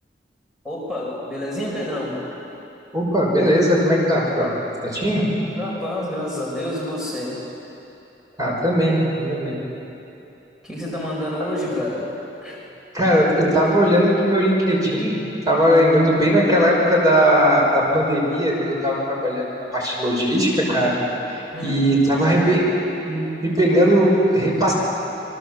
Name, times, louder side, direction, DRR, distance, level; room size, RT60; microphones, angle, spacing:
voice 1, 0.6-2.2 5.5-7.4 10.6-12.2 12.4-12.6 21.5-21.8, left 1 dB, 5° right, -5 dB, 5.4 m, -28 dB
voice 2, 2.9-4.5 4.8-5.3 8.4-9.6 11.4-11.5 12.9-15.2 15.5-19.5 19.7-21.0 21.3-22.7 23.1-24.7, equal, 20° right, -3 dB, 5.8 m, -18 dB
28.0 x 24.0 x 8.0 m, 2.9 s
head